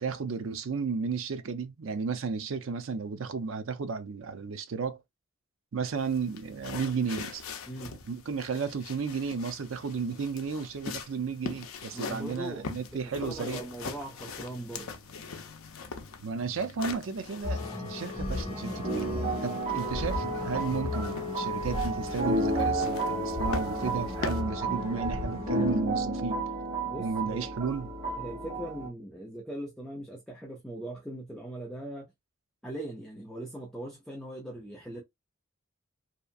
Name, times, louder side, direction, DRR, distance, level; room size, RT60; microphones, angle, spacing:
voice 1, 0.0-5.0 5.7-7.4 8.0-13.6 16.2-26.4 27.0-27.9, right 5 dB, 70° right, 0.5 m, -33 dB
sound 1, 6.0-24.4, left 4 dB, 85° left, 0.5 m, -43 dB
voice 2, 11.9-14.9 26.8-27.5 28.2-32.1 32.6-35.0, right 1 dB, 5° left, 0.5 m, -40 dB
sound 2, 17.4-25.8, left 3 dB, 30° left, 1.0 m, -35 dB
sound 3, 18.8-28.9, right 2 dB, 35° right, 1.5 m, -32 dB
2.8 x 2.3 x 2.5 m
head